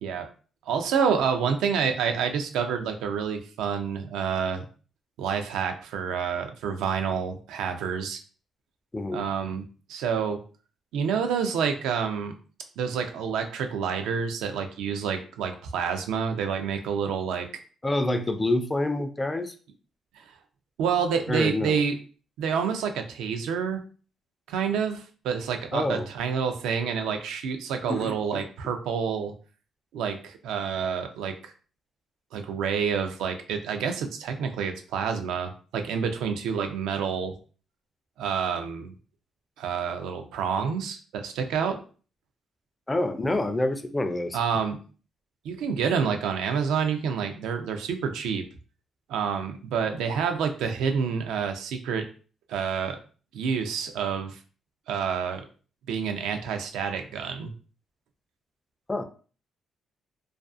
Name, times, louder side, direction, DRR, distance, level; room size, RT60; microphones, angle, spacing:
voice 1, 0.7-4.6 5.2-8.2 9.1-10.4 10.9-12.3 12.8-17.5 20.2-20.3 20.8-22.0 22.4-23.8 24.5-29.3 29.9-31.5 32.3-37.4 38.2-38.9 39.6-41.8 44.3-44.8 45.4-48.4 49.1-52.0 52.5-53.0 53.3-54.4 54.9-55.4 55.9-57.5, right 6 dB, 85° right, 6 dB, 0.4 m, -28 dB
voice 2, 17.8-19.5 21.3-21.8 25.7-26.1 27.9-28.4 42.9-44.4 58.9-59.0, left 2 dB, 20° left, 8 dB, 0.3 m, -27 dB
2.4 x 2.3 x 2.4 m, 0.39 s
cardioid pair, 90°, 0 cm